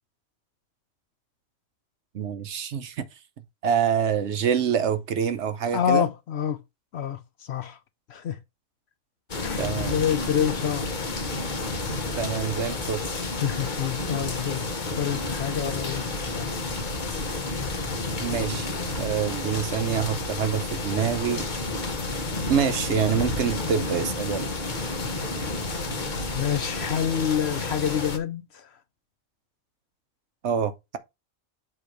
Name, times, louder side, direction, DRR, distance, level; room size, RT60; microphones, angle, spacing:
voice 1, 2.1-3.0 3.6-6.1 9.6-10.0 12.2-13.0 18.2-21.5 22.5-24.5 30.4-31.0, right 7 dB, 60° right, 0.9 m, -26 dB
voice 2, 5.7-6.6 6.9-7.8 8.1-8.4 9.4-10.8 13.4-16.0 16.3-16.5 26.3-28.7, left 9 dB, 60° left, 0.8 m, -27 dB
sound 1, 9.3-28.2, left 2 dB, 35° left, 1.2 m, -30 dB
7.6 x 3.0 x 5.1 m
omnidirectional pair, 1.4 m